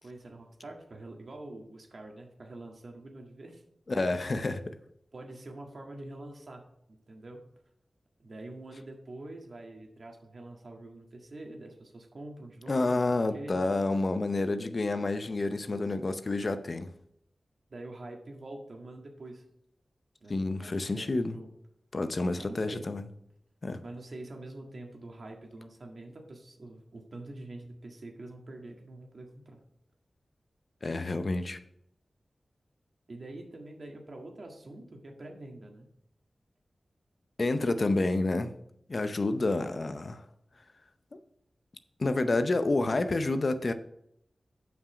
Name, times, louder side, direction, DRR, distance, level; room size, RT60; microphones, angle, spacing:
voice 1, 0.0-3.6 5.1-6.6 6.9-7.4 8.2-13.0 13.3-13.7 17.7-19.4 20.2-21.5 22.4-22.9 23.8-29.6 30.9-31.2 33.1-35.9, right 2 dB, 65° right, 1.7 m, -45 dB
voice 2, 3.9-4.8 12.7-16.9 20.3-21.4 21.9-23.0 23.6-23.8 30.8-31.6 37.4-38.5 38.9-40.2 41.1-41.2 42.0-43.7, left 2 dB, 55° left, 0.6 m, -29 dB
7.3 x 5.8 x 5.0 m
cardioid pair, 50°, 0 cm